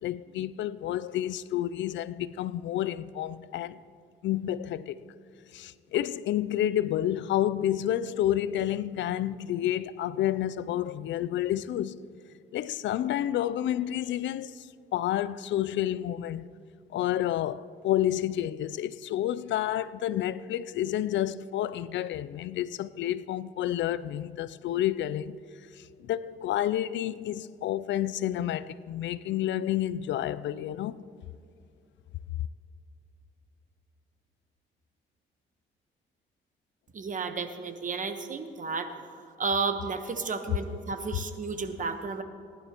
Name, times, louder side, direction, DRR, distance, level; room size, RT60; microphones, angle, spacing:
voice 1, 0.0-3.8 4.2-5.0 5.5-12.0 12.5-14.7 14.9-16.5 16.9-25.4 25.7-31.0, left 12 dB, 65° left, 0.4 m, -30 dB
voice 2, 36.9-38.9 39.4-42.2, right 4 dB, 40° right, 1.1 m, -32 dB
19.0 x 11.0 x 3.0 m
cardioid pair, 90°, 20 cm